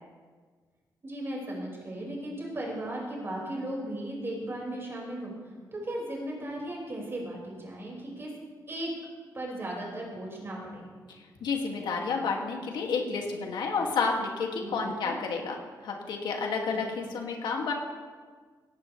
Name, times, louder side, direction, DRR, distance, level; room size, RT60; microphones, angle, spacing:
voice 1, 1.0-5.3 5.7-8.3 8.7-8.9 9.3-10.8 14.6-15.2 16.7-16.8, right 1 dB, 30° right, -2 dB, 5.5 m, -36 dB
voice 2, 11.1-17.7, left 4 dB, 85° left, 1 dB, 2.4 m, -31 dB
17.5 x 17.0 x 3.4 m, 1.5 s
wide cardioid pair, 125°, 8 cm